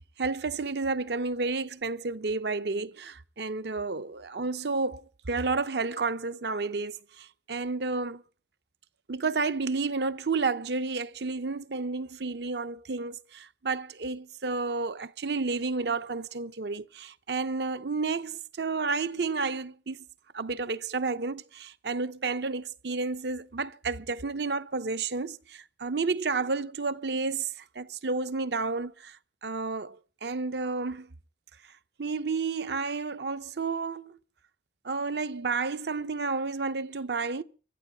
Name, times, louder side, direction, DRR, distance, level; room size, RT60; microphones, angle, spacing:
voice 1, 0.2-8.2 9.1-20.1 20.3-31.1 32.0-34.2 34.8-37.4, right 4 dB, 70° right, 0.7 m, -31 dB
24.5 x 12.5 x 3.8 m
head